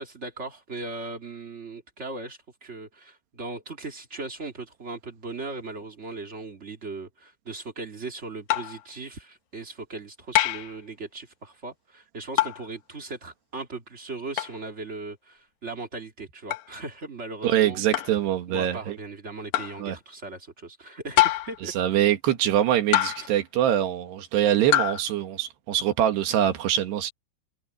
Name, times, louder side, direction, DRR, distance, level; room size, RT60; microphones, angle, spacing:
voice 1, 0.0-17.8 18.5-21.7, right 3 dB, 45° right, 0.8 m, -38 dB
sound 1, 8.5-8.8 10.3-10.7 12.4-12.7 14.4-14.6 16.5-16.7 17.9-18.2 19.5-19.8 21.2-21.6 22.9-23.4 24.7-25.0, left 14 dB, 85° left, 1.6 m, -24 dB
voice 2, 17.4-19.0 19.8-20.0 21.6-27.1, right 11 dB, 85° right, 3.8 m, -24 dB
omnidirectional pair, 4.7 m